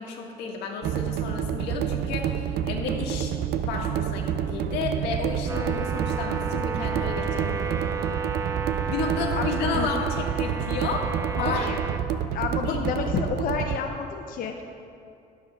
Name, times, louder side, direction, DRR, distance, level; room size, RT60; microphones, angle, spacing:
voice 1, 0.0-3.3 3.6-8.0 8.9-11.7 12.6-12.8, left 4 dB, 90° left, 0 dB, 1.5 m, -32 dB
sound 1, 0.8-13.8, right 9 dB, 70° right, 0.5 m, -29 dB
sound 2, 5.5-12.0, right 5 dB, 20° right, 0.6 m, -32 dB
voice 2, 11.4-11.8 12.3-14.6, left 6 dB, 55° left, 3 dB, 0.7 m, -29 dB
9.9 x 7.1 x 5.9 m, 2.5 s
cardioid pair, 110°, 17 cm